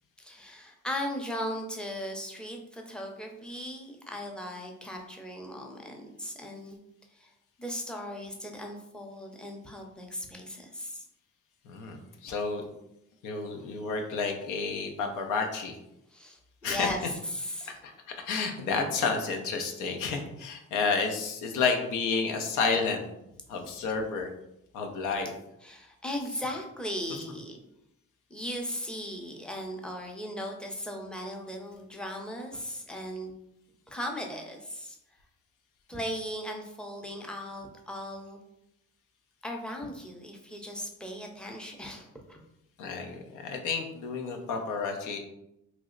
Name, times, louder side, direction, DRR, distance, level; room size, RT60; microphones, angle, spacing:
voice 1, 0.2-6.8 7.2-7.3 7.6-11.0 16.1-16.4 16.7-17.8 25.6-27.6 28.3-33.3 33.9-35.0 35.9-38.4 39.4-42.4, equal, 5° left, 1 dB, 0.6 m, -37 dB
voice 2, 11.7-12.7 13.2-15.7 16.6-16.9 17.8-17.9 18.2-23.0 23.5-24.3 24.7-25.3 42.8-45.2, left 4 dB, 90° left, 4 dB, 0.6 m, -30 dB
3.0 x 2.0 x 3.7 m, 0.83 s
cardioid pair, 90°, 30 cm